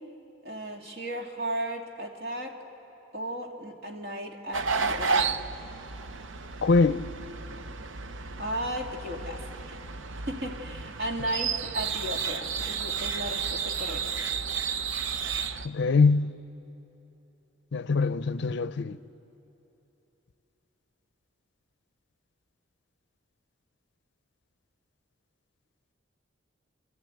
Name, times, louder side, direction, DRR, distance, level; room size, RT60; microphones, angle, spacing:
voice 1, 0.4-2.5 3.1-5.4 8.4-9.8 10.1-14.2, right 1 dB, 55° right, 2.4 m, -35 dB
sound 1, 4.5-15.7, right 5 dB, 70° right, 0.7 m, -32 dB
voice 2, 6.6-7.0 15.6-16.3 17.7-19.0, left 4 dB, 65° left, 0.5 m, -23 dB
29.5 x 14.0 x 9.0 m
head